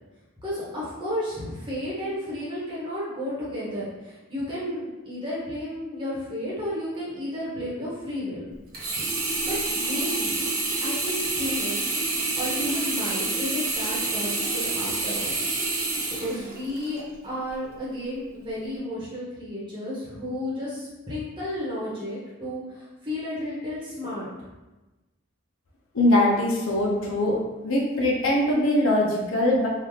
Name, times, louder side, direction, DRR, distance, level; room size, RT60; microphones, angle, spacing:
voice 1, 0.4-8.5 9.5-10.5 10.8-11.9 12.4-15.3 16.2-24.3, left 1 dB, 20° right, -7 dB, 1.0 m, -32 dB
Sink (filling or washing), 8.7-17.0 17.5-17.6, right 3 dB, 45° right, 0.7 m, -28 dB
voice 2, 25.9-27.4 27.6-29.7, left 1 dB, 65° left, -3 dB, 0.7 m, -22 dB
3.7 x 2.4 x 3.1 m, 1.1 s
head